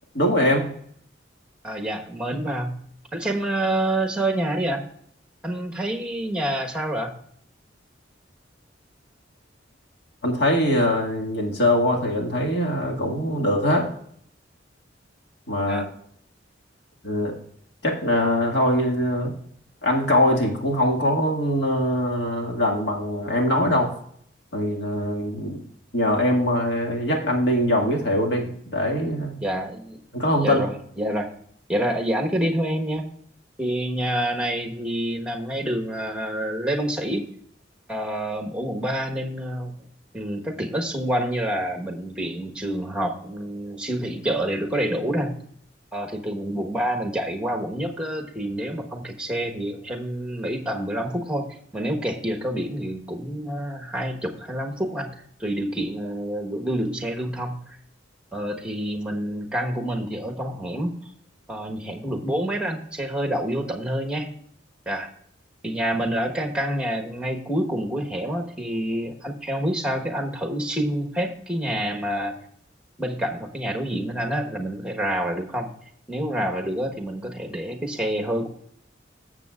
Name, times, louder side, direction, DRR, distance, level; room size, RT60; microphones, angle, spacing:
voice 1, 0.1-0.7 10.2-13.9 15.5-15.9 17.0-17.3 17.8-19.3 19.8-23.9 24.5-25.6 25.9-29.4 30.1-30.6, left 1 dB, 65° left, 0 dB, 1.9 m, -22 dB
voice 2, 1.6-2.7 3.1-4.8 5.4-7.1 15.7-15.9 29.4-30.0 30.4-31.3 31.7-33.0 33.6-37.2 37.9-39.7 40.1-45.3 45.9-57.8 58.3-61.0 61.5-64.3 64.9-65.1 65.6-72.4 73.0-75.7 76.1-78.5, right 1 dB, 5° right, 2 dB, 1.2 m, -27 dB
14.0 x 7.4 x 2.4 m, 0.65 s
head